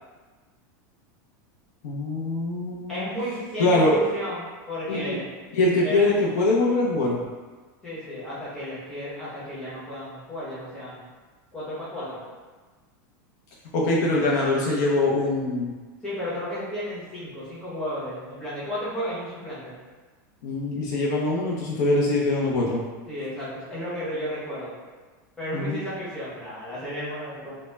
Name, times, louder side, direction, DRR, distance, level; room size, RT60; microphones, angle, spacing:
voice 1, 1.8-3.1 3.6-4.0 4.9-5.2 5.5-7.2 13.7-15.7 20.4-22.8 25.5-25.8, left 2 dB, 60° left, -3 dB, 0.5 m, -23 dB
voice 2, 2.9-5.3 5.8-6.1 7.8-11.1 11.5-12.2 16.0-19.8 23.1-24.8 25.4-27.6, equal, 5° left, -10 dB, 0.7 m, -33 dB
2.0 x 2.0 x 3.2 m, 1.3 s
supercardioid pair, 170°, 10 cm